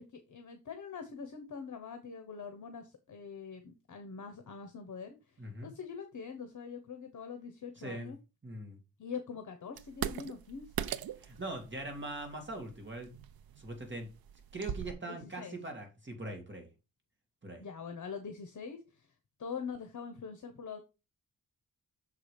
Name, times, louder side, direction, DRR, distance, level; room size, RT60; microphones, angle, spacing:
voice 1, 0.0-8.2 9.0-10.9 15.0-15.6 17.6-19.1 19.4-20.8, left 6 dB, 55° left, 7 dB, 1.0 m, -44 dB
voice 2, 5.4-5.7 7.8-8.1 8.4-8.8 11.2-13.1 13.6-14.1 14.5-16.7 17.4-17.7, right 2 dB, 30° right, 3 dB, 2.1 m, -41 dB
sound 1, 9.8-14.9, right 9 dB, 90° right, 0.5 m, -41 dB
6.5 x 4.9 x 5.1 m, 0.28 s
wide cardioid pair, 120°, 35 cm